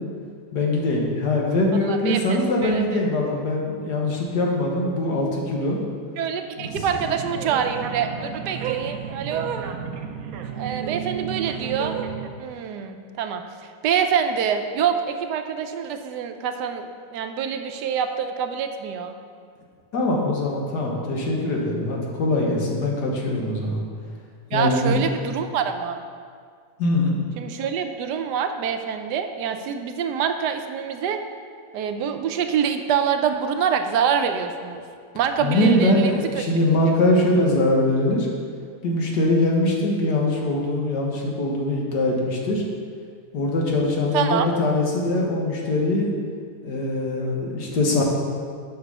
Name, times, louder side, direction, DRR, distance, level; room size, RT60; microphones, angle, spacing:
voice 1, 0.5-5.8 6.6-6.8 19.9-23.8 24.5-25.4 26.8-27.2 35.4-38.3 38.8-42.6 43.3-46.1 46.6-48.0, left 1 dB, 80° left, -1 dB, 1.8 m, -22 dB
voice 2, 1.9-2.8 6.2-9.5 10.5-12.0 12.4-13.4 13.8-19.1 24.5-26.0 27.4-31.2 31.7-34.8 35.1-36.4 44.1-44.5, right 7 dB, 85° right, 7 dB, 1.2 m, -25 dB
sound 1, 6.6-12.3, right 7 dB, 65° right, 1.0 m, -32 dB
8.2 x 5.5 x 5.4 m, 2.1 s
omnidirectional pair, 1.8 m